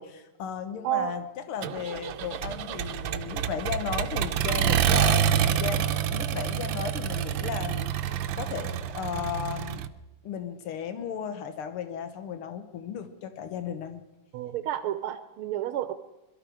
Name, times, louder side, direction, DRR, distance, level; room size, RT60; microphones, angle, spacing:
voice 1, 0.0-9.9 10.2-14.0, left 7 dB, 90° left, 9 dB, 2.0 m, -35 dB
Accelerating revving vroom, 1.6-9.9, right 9 dB, 70° right, 1.3 m, -27 dB
voice 2, 14.3-15.9, right 12 dB, 85° right, 9 dB, 1.6 m, -30 dB
22.0 x 13.0 x 4.9 m, 1.0 s
omnidirectional pair, 2.3 m